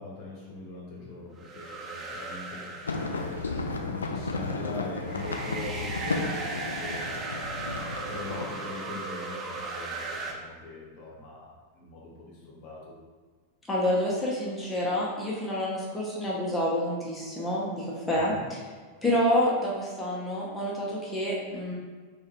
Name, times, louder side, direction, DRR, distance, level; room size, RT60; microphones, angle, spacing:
voice 1, 0.0-3.4 3.8-7.1 8.1-12.9 18.1-18.5, left 2 dB, 45° left, -3 dB, 0.9 m, -42 dB
sound 1, 1.4-3.9 5.0-10.3, right 3 dB, 25° right, 0.5 m, -37 dB
sound 2, 2.9-8.5, left 3 dB, 75° left, 0.3 m, -33 dB
voice 2, 13.7-18.6 19.0-21.7, left 1 dB, 10° left, -6 dB, 0.9 m, -28 dB
3.7 x 3.2 x 2.9 m, 1.5 s
figure-of-eight pair, 90°, 0 cm